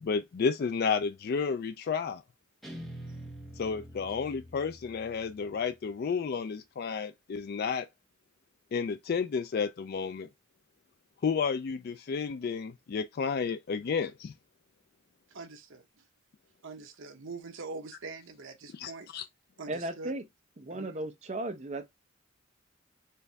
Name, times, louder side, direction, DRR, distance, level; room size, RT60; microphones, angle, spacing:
voice 1, 0.0-2.2 3.6-7.9 8.7-10.3 11.2-14.3 18.7-19.2, left 5 dB, 50° left, 0.3 m, -31 dB
Guitar, 2.6-5.8, equal, ahead, 0.8 m, -46 dB
voice 2, 15.3-15.9 16.6-19.1 19.6-20.1 20.7-20.9, right 3 dB, 75° right, 0.9 m, -43 dB
voice 3, 19.7-20.2 20.6-21.9, right 2 dB, 35° right, 0.7 m, -36 dB
4.5 x 2.5 x 3.3 m
head